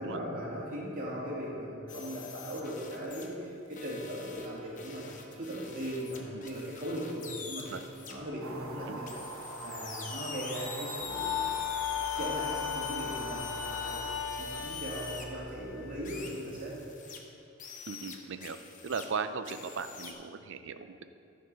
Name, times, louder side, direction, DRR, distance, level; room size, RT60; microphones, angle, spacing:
voice 1, 0.0-5.1 5.3-7.7 8.1-9.2 9.6-11.3 12.1-16.8, equal, 40° right, -5 dB, 2.5 m, -38 dB
sound 1, 1.9-3.3 3.7-8.1 9.1-15.2 16.0-17.2 17.6-19.1 19.4-20.1, left 5 dB, 40° left, 0.9 m, -44 dB
sound 2, 8.4-14.2, right 2 dB, 80° right, 1.0 m, -43 dB
sound 3, 11.0-16.2, left 9 dB, 55° left, 1.1 m, -37 dB
voice 2, 17.9-18.6 18.8-21.0, right 5 dB, 60° right, 10 dB, 0.5 m, -37 dB
13.5 x 5.4 x 5.5 m, 2.7 s
head